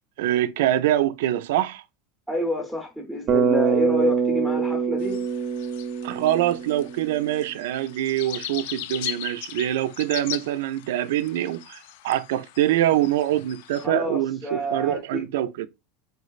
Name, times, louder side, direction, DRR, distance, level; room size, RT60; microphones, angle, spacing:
voice 1, 0.2-1.8 6.0-11.8 12.0-15.7, right 13 dB, 85° right, 0.4 m, -24 dB
voice 2, 2.3-5.2 13.8-15.2, equal, 5° left, 0.7 m, -28 dB
Bass guitar, 3.3-7.4, right 6 dB, 35° right, 0.6 m, -25 dB
sound 1, 5.0-13.8, left 13 dB, 75° left, 0.4 m, -39 dB
4.6 x 3.1 x 2.4 m
supercardioid pair, 160°, 0 cm